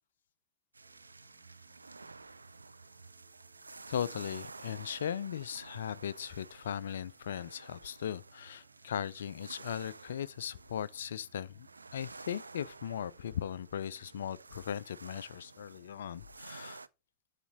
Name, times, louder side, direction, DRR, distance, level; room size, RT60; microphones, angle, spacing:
sound 1, 0.7-16.9, right 3 dB, 80° right, 0.3 m, -52 dB
sound 2, 0.8-16.8, right 8 dB, 60° right, 1.2 m, -67 dB
voice 1, 3.9-16.8, left 9 dB, 65° left, 0.3 m, -38 dB
7.3 x 6.9 x 3.9 m
figure-of-eight pair, 90°, 0 cm